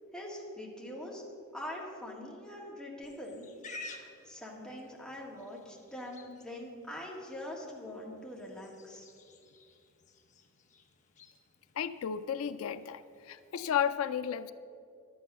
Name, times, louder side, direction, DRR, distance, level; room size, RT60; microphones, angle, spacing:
voice 1, 0.1-1.2 1.5-3.5 3.9-9.1, left 1 dB, 5° left, -3 dB, 1.9 m, -43 dB
Livestock farm animals working animals, 3.0-13.9, left 3 dB, 35° left, 0.9 m, -54 dB
voice 2, 11.8-14.5, left 8 dB, 80° left, 13 dB, 0.4 m, -33 dB
11.5 x 8.5 x 6.7 m, 2.4 s
head